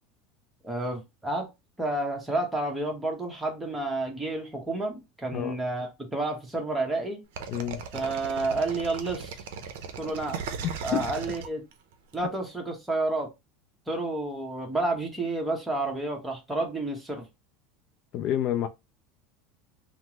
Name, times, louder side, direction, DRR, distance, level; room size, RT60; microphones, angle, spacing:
voice 1, 0.6-1.5 1.8-7.2 7.9-9.4 10.0-10.4 10.8-11.6 12.1-13.3 13.9-17.3, right 2 dB, 10° right, 1.0 m, -30 dB
sound 1, 7.4-12.1, right 6 dB, 80° right, 0.5 m, -37 dB
voice 2, 7.5-7.8 10.8-11.1 18.1-18.7, left 11 dB, 50° left, 0.3 m, -28 dB
3.2 x 2.0 x 2.9 m
supercardioid pair, 135°, 0 cm